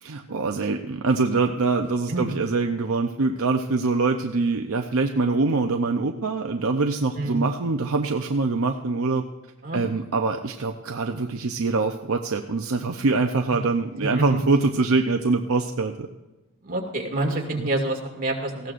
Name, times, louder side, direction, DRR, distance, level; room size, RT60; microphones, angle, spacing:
voice 1, 0.0-9.3 9.7-16.1 17.6-17.7, right 3 dB, 70° right, 4 dB, 0.7 m, -24 dB
voice 2, 7.1-7.4 9.6-9.8 14.0-14.4 16.6-18.7, right 2 dB, 40° right, 0 dB, 2.3 m, -27 dB
19.0 x 15.5 x 2.6 m, 1.1 s
head